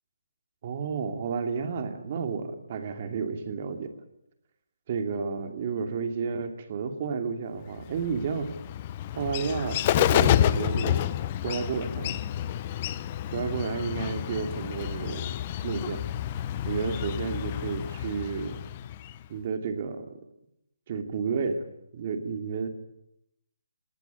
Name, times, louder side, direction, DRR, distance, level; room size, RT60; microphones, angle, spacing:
voice 1, 0.6-3.9 4.9-8.5 9.1-11.1 11.4-12.2 13.3-15.3 15.6-16.0 16.7-18.6 19.3-20.2 20.9-21.6 21.9-22.7, right 5 dB, 35° right, 7 dB, 2.7 m, -31 dB
Bird, 7.8-19.3, left 11 dB, 25° left, 0.7 m, -29 dB
19.0 x 18.5 x 9.5 m, 0.81 s
hypercardioid pair, 165°, 0 cm